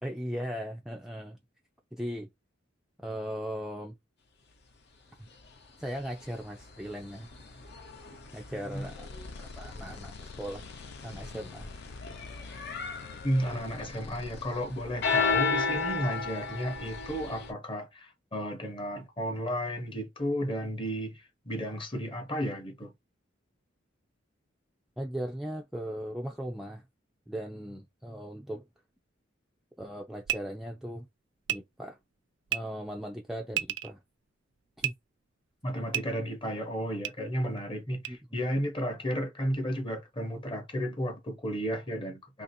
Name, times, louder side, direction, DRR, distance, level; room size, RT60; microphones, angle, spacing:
voice 1, 0.0-1.4 1.9-2.3 3.0-4.0 5.8-7.3 8.3-9.1 9.4-10.7 11.0-11.7 25.0-26.8 27.3-28.6 29.8-31.1 31.5-32.0 32.5-34.0 34.8-34.9 38.1-38.2, equal, ahead, 0.4 m, -38 dB
sound 1, 5.3-5.4 6.0-17.5, left 5 dB, 60° left, 0.9 m, -35 dB
voice 2, 8.5-8.9 13.2-22.9 35.6-42.4, equal, 25° left, 0.9 m, -33 dB
sound 2, 8.7-14.5, left 4 dB, 80° left, 0.5 m, -47 dB
sound 3, 30.2-30.4 31.5-31.6 32.5-32.6 33.5-33.9 34.8-34.9 35.9-36.0 37.0-37.1 38.0-38.1, right 11 dB, 65° right, 0.4 m, -30 dB
2.9 x 2.7 x 4.1 m
head